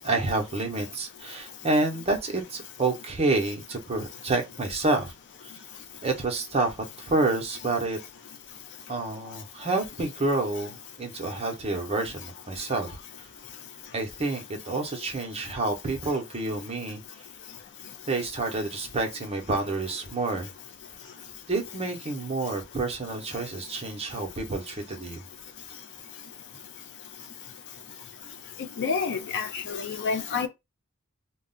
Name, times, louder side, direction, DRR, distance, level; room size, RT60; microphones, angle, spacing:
voice 1, 0.0-5.1 5.4-5.5 6.0-8.0 8.9-13.3 13.9-17.0 18.1-20.5 21.5-25.2, right 2 dB, 30° right, 0.7 m, -29 dB
voice 2, 28.6-30.5, left 5 dB, 55° left, 0.4 m, -29 dB
2.3 x 2.0 x 3.7 m
head